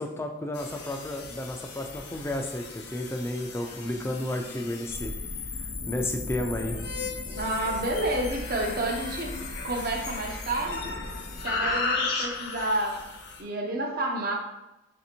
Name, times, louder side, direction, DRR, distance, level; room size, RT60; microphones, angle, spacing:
voice 1, 0.0-5.1 5.9-6.8, left 1 dB, 15° left, 3 dB, 0.4 m, -32 dB
sound 1, 0.5-13.4, left 3 dB, 60° left, 0.6 m, -35 dB
voice 2, 7.3-10.9 11.4-13.0 13.4-14.3, right 1 dB, 55° right, 0 dB, 0.7 m, -30 dB
3.3 x 2.7 x 4.3 m, 0.98 s
head